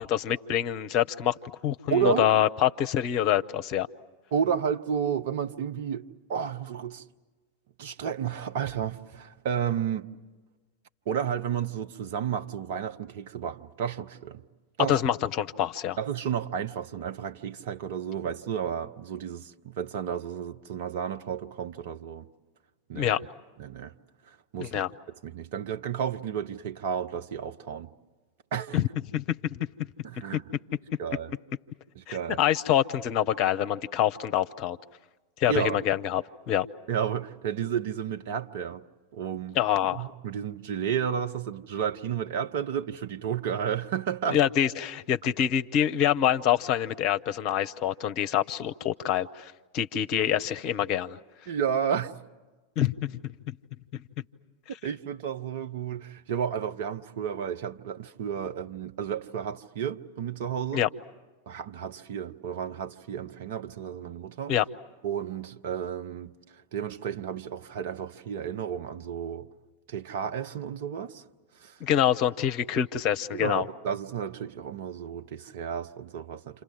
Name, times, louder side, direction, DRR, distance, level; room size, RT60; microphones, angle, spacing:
voice 1, 0.0-1.3 1.6-3.9 14.9-16.0 22.9-23.2 24.6-24.9 28.7-28.9 29.1-29.6 32.1-34.8 35.4-36.7 39.5-40.0 44.3-51.2 52.8-53.1 53.5-53.6 53.9-54.0 60.7-60.9 64.5-64.6 71.8-73.7, left 10 dB, 40° left, 0.9 m, -26 dB
voice 2, 1.9-2.3 4.3-7.0 7.8-10.1 11.1-14.4 14.8-15.0 16.0-22.3 22.9-23.2 23.6-23.9 24.3-24.8 25.2-27.9 28.5-28.8 30.0-30.4 31.0-31.3 31.9-32.4 35.5-35.8 36.9-38.8 39.1-39.6 39.9-44.4 51.5-52.1 54.8-60.8 61.5-64.5 65.0-66.3 66.7-69.5 69.9-71.2 71.6-71.8 73.3-76.6, right 8 dB, 50° right, 1.1 m, -32 dB
28.5 x 27.0 x 7.6 m
figure-of-eight pair, 90°, 0 cm